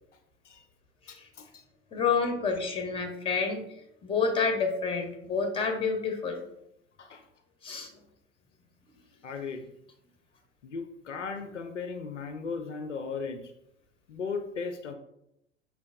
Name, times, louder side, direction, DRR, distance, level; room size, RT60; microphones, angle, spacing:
voice 1, 1.1-1.6 7.0-7.2 9.2-9.7 10.6-13.5 14.1-14.9, left 5 dB, 85° left, 8 dB, 0.5 m, -37 dB
voice 2, 1.9-3.6 4.0-6.4 7.6-7.9, left 5 dB, 15° left, 3 dB, 0.7 m, -28 dB
5.2 x 3.3 x 2.5 m, 0.80 s
figure-of-eight pair, 80°, 35 cm